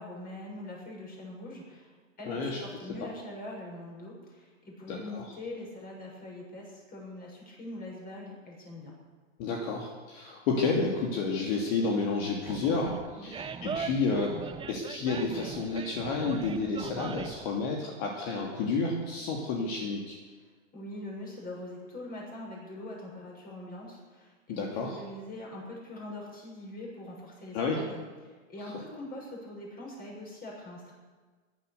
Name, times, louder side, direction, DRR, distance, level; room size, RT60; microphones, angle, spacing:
voice 1, 0.0-1.9 2.2-8.9 13.2-13.3 20.7-30.9, left 1 dB, 25° left, -2 dB, 7.1 m, -43 dB
voice 2, 2.3-2.6 4.9-5.3 9.4-14.3 14.7-20.2 24.5-25.0 27.5-27.8 28.6-28.7, left 4 dB, 50° left, 0 dB, 2.8 m, -30 dB
Animal, 12.4-17.5, right 6 dB, 15° right, 0.9 m, -39 dB
17.5 x 12.0 x 6.9 m, 1.4 s
hypercardioid pair, 120°, 38 cm